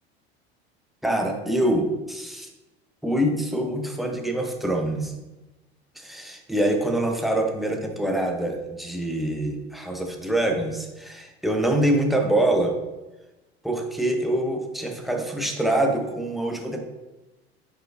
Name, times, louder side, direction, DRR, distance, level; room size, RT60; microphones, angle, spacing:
voice 1, 1.0-2.5 3.0-5.1 6.0-12.7 13.6-16.8, right 1 dB, ahead, 2 dB, 0.7 m, -25 dB
4.8 x 4.5 x 2.5 m, 1.1 s
hypercardioid pair, 75°, 33 cm